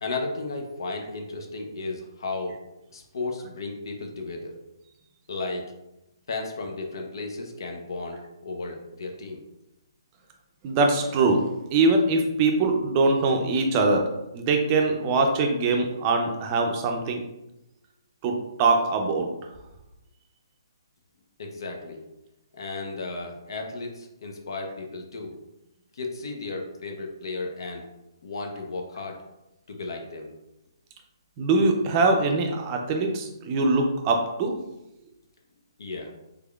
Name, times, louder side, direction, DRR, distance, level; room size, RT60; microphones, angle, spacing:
voice 1, 0.0-2.6 2.9-4.5 5.3-5.6 6.3-9.4 21.4-22.0 22.5-25.3 25.9-27.9 28.2-29.2 29.7-30.3 35.8-36.1, left 3 dB, 65° left, 2 dB, 0.6 m, -34 dB
voice 2, 10.6-11.4 11.7-14.0 14.3-17.2 18.2-19.3 31.4-34.6, right 3 dB, 30° right, 3 dB, 0.5 m, -22 dB
3.5 x 3.3 x 2.3 m, 0.93 s
hypercardioid pair, 145°, 3 cm